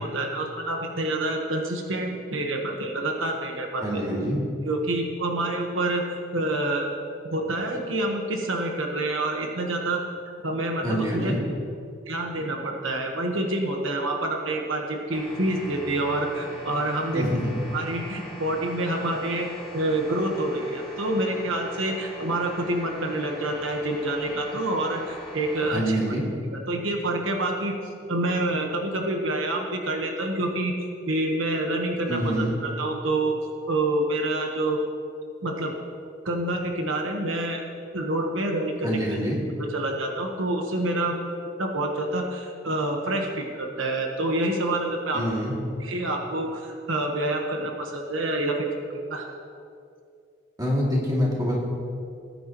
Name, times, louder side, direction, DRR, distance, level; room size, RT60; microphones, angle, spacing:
voice 1, 0.0-4.0 4.6-6.9 7.3-10.0 10.4-11.3 12.1-17.3 17.7-19.5 19.7-26.2 26.5-27.7 28.1-30.7 31.1-33.4 33.7-34.8 35.4-35.7 36.2-37.6 37.9-39.2 39.7-41.2 41.6-45.3 45.8-48.7 49.0-49.3, right 1 dB, 90° right, 2 dB, 1.3 m, -27 dB
voice 2, 3.8-4.4 10.8-11.4 17.1-17.5 25.7-26.2 32.1-32.6 38.8-39.4 45.1-45.6 50.6-51.6, equal, 20° right, -4 dB, 2.5 m, -26 dB
sound 1, 15.1-25.8, left 1 dB, 5° left, 2.7 m, -42 dB
19.0 x 9.8 x 3.1 m, 2.4 s
head